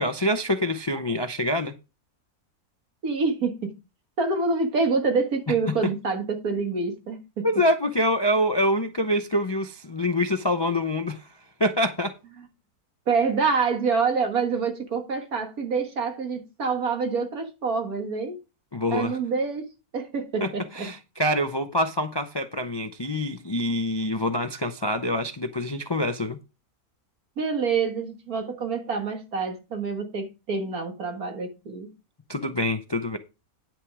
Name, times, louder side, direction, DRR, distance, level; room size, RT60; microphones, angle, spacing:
voice 1, 0.0-1.7 7.4-11.3 11.6-12.1 18.7-19.2 20.4-26.4 32.3-33.2, left 1 dB, 40° left, 0.3 m, -25 dB
voice 2, 3.0-3.7 4.2-7.5 13.1-18.4 18.9-19.7 19.9-20.9 27.4-31.9, right 4 dB, 70° right, 2.2 m, -26 dB
10.0 x 6.0 x 4.8 m
omnidirectional pair, 1.6 m